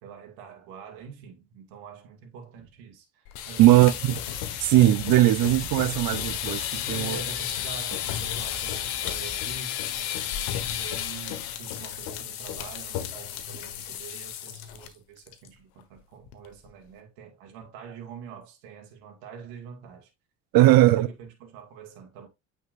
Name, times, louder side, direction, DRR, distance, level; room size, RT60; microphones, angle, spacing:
voice 1, 0.0-4.0 6.9-20.1 20.7-22.3, right 6 dB, 75° right, 2.1 m, -45 dB
sound 1, 3.3-14.9 15.2-15.5 15.8-15.9 16.3-16.7, left 10 dB, 70° left, 1.5 m, -33 dB
sound 2, 3.5-9.6, equal, ahead, 1.6 m, -49 dB
voice 2, 3.6-4.2 4.6-7.2 20.5-21.1, right 15 dB, 60° right, 0.9 m, -19 dB
9.1 x 5.8 x 2.6 m
hypercardioid pair, 65°, 39 cm